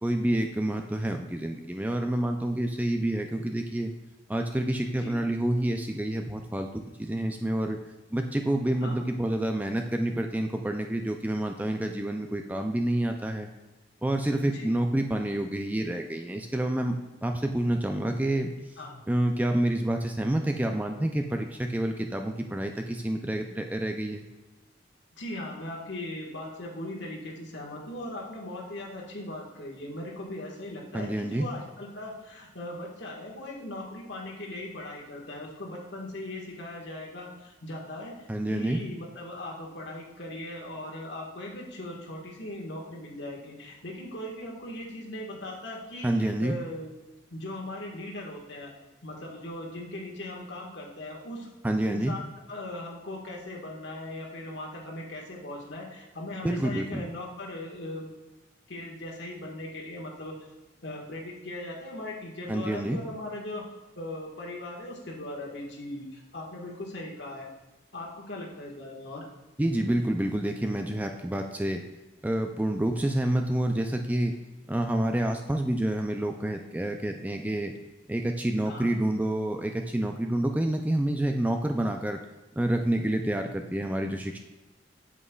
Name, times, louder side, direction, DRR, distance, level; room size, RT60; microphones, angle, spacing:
voice 1, 0.0-3.9 4.3-7.8 8.1-13.5 14.0-17.0 17.2-18.5 19.1-24.3 30.9-31.5 38.3-38.8 46.0-46.5 51.6-52.1 56.4-57.0 62.5-63.0 69.6-71.8 72.2-74.3 74.7-77.7 78.1-82.2 82.6-84.4, right 1 dB, 10° right, 4 dB, 0.3 m, -28 dB
voice 2, 25.1-38.1 38.5-46.9 47.3-48.7 49.0-51.5 51.8-58.1 58.7-60.3 60.8-63.7 63.9-67.5 67.9-69.3 78.6-78.9, left 1 dB, 70° left, -2 dB, 1.6 m, -39 dB
8.2 x 7.5 x 2.3 m, 1.1 s
head